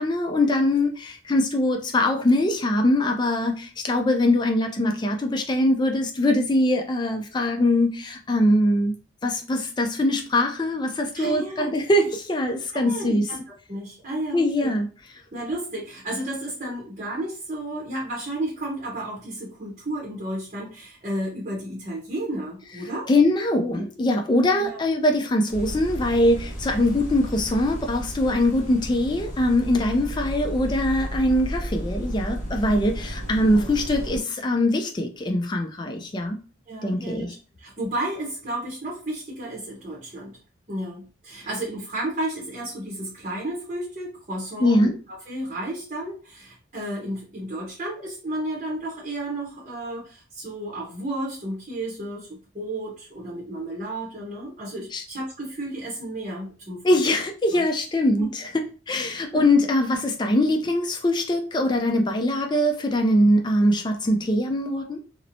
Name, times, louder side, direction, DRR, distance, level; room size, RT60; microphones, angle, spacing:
voice 1, 0.0-8.9 9.2-13.2 14.3-14.9 23.1-36.4 36.8-37.3 44.6-44.9 54.9-55.0 56.8-58.5 58.9-65.0, left 1 dB, 25° left, 4 dB, 0.3 m, -22 dB
voice 2, 11.1-11.7 12.7-13.4 13.7-14.7 15.3-23.1 23.4-23.8 24.6-24.8 33.5-33.7 36.7-40.4 40.7-57.0 57.5-57.6 58.2-58.3 59.3-59.5, right 1 dB, 35° right, -5 dB, 0.7 m, -32 dB
sound 1, 25.5-34.2, equal, 40° left, 0.8 m, -33 dB
2.8 x 2.0 x 2.5 m, 0.36 s
head